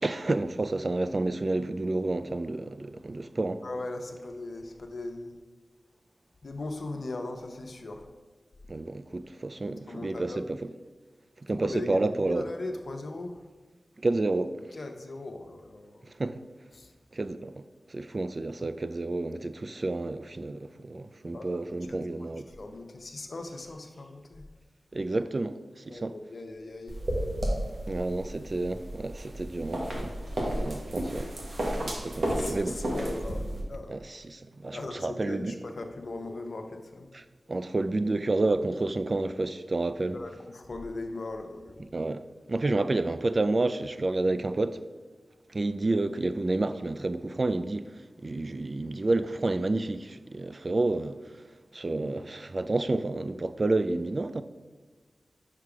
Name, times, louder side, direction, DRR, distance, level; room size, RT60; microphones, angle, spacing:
voice 1, 0.0-3.6 8.7-10.6 11.4-12.5 14.0-14.6 16.2-16.4 17.1-17.6 17.9-22.5 24.9-26.2 27.9-30.1 30.5-31.3 31.8-32.8 33.9-35.5 37.1-37.2 37.5-40.2 41.9-42.2 42.5-44.8 45.5-47.9 48.2-51.4 51.7-54.4, right 2 dB, 45° right, 0.3 m, -30 dB
voice 2, 3.6-5.3 6.4-8.1 9.7-10.4 11.5-13.4 14.7-16.2 16.7-16.9 21.3-21.6 21.9-24.5 25.9-27.0 32.4-34.0 34.7-37.1 40.1-41.9 42.6-42.8, left 2 dB, 65° left, 0.7 m, -39 dB
sound 1, 26.9-33.6, right 1 dB, 70° right, 1.3 m, -32 dB
5.8 x 4.8 x 4.9 m
cardioid pair, 40°, 0 cm